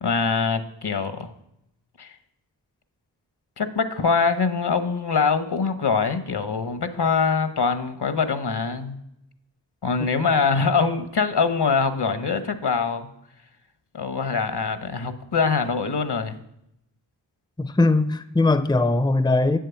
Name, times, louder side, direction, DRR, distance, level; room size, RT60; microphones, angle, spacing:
voice 1, 0.0-1.3 2.0-2.1 3.6-9.0 9.8-13.1 13.9-16.4, left 5 dB, 60° left, 10 dB, 1.1 m, -23 dB
voice 2, 17.6-19.6, left 2 dB, 10° left, 11 dB, 0.6 m, -20 dB
8.2 x 7.7 x 7.0 m, 0.81 s
cardioid pair, 45°, 44 cm